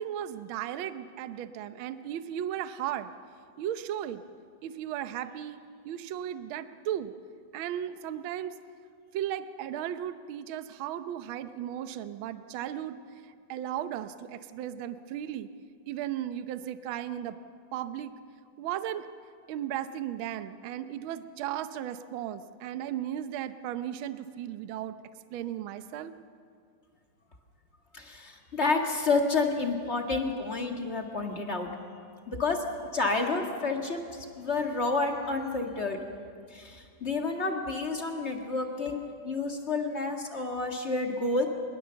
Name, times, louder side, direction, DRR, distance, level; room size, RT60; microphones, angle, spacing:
voice 1, 0.0-3.1 3.6-4.2 4.6-5.6 5.8-7.1 7.5-8.6 9.1-13.0 13.5-15.5 15.9-17.4 17.7-18.1 18.6-19.1 19.5-24.9 25.3-26.1, right 11 dB, 85° right, 11 dB, 1.1 m, -35 dB
voice 2, 27.9-31.7 32.3-32.6 32.9-36.0 36.5-41.5, left 3 dB, 30° left, 2 dB, 1.5 m, -30 dB
23.0 x 21.5 x 7.0 m, 2.2 s
omnidirectional pair, 3.4 m